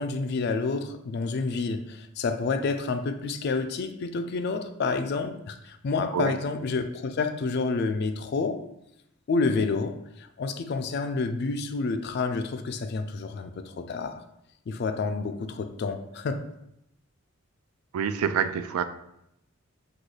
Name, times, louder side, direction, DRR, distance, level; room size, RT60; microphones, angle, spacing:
voice 1, 0.0-8.6 9.3-14.2 14.7-16.4, left 4 dB, 50° left, 9 dB, 0.3 m, -29 dB
voice 2, 17.9-18.8, right 7 dB, 80° right, 11 dB, 0.3 m, -26 dB
6.1 x 2.3 x 3.2 m, 0.81 s
head